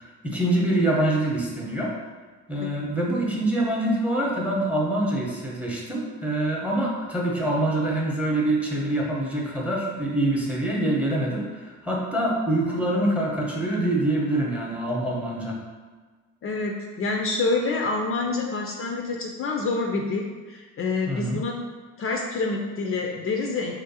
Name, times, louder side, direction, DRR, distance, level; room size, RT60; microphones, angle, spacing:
voice 1, 0.2-1.9 2.5-15.6 21.1-21.4, right 1 dB, 5° right, -3 dB, 0.8 m, -25 dB
voice 2, 16.4-21.6 22.0-23.7, left 3 dB, 45° left, 1 dB, 0.5 m, -27 dB
3.2 x 2.6 x 4.0 m, 1.4 s
cardioid pair, 95°, 32 cm